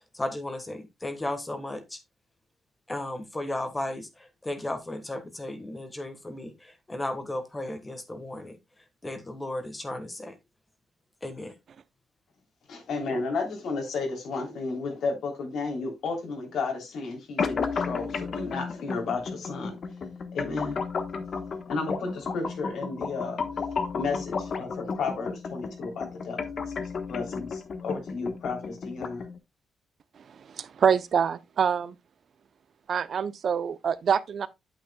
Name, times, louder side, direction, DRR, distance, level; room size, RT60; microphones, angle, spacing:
voice 1, 0.1-2.0 2.9-8.6 9.0-10.3 11.2-11.5, left 1 dB, 15° left, 1.4 m, -35 dB
voice 2, 12.7-19.8 20.3-20.8 21.7-23.4 23.9-26.4 27.1-29.2, left 4 dB, 80° left, 3.3 m, -33 dB
sound 1, 17.4-29.4, left 5 dB, 50° left, 1.2 m, -33 dB
voice 3, 30.6-31.9 32.9-34.5, right 7 dB, 55° right, 0.6 m, -25 dB
8.8 x 8.5 x 2.3 m
cardioid pair, 120°, 0 cm